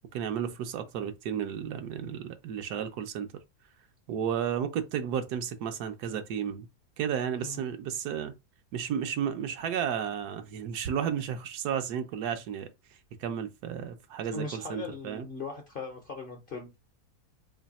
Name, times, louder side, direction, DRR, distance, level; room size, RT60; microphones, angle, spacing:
voice 1, 0.1-3.3 4.1-6.7 7.0-8.3 8.7-12.7 13.2-15.3, right 8 dB, 80° right, 1.2 m, -33 dB
voice 2, 14.2-16.8, left 4 dB, 50° left, 0.6 m, -39 dB
3.3 x 2.6 x 4.0 m
omnidirectional pair, 1.7 m